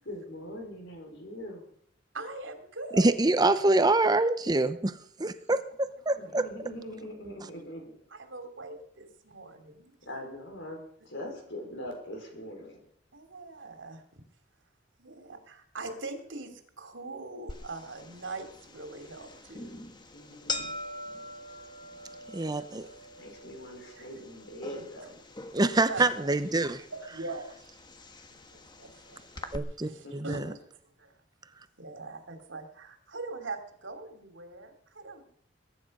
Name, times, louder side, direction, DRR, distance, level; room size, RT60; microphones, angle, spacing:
voice 1, 0.1-1.7 6.2-8.0 10.0-12.8 20.1-20.8 21.5-21.7 22.3-22.4 23.2-25.2 30.0-30.4, equal, 70° left, 2 dB, 5.3 m, -42 dB
voice 2, 2.1-3.1 8.1-9.9 13.1-14.2 15.0-19.8 21.8-22.2 25.9-26.3 26.9-27.5 28.5-30.7 31.0-31.1 31.8-35.3, right 3 dB, 85° right, 6 dB, 2.9 m, -42 dB
voice 3, 3.0-6.4 22.3-22.9 25.5-26.8 29.5-30.5, right 2 dB, 20° right, 12 dB, 0.7 m, -25 dB
sound 1, 17.5-29.6, left 2 dB, 25° left, 1.4 m, -43 dB
22.0 x 10.0 x 5.4 m, 0.67 s
head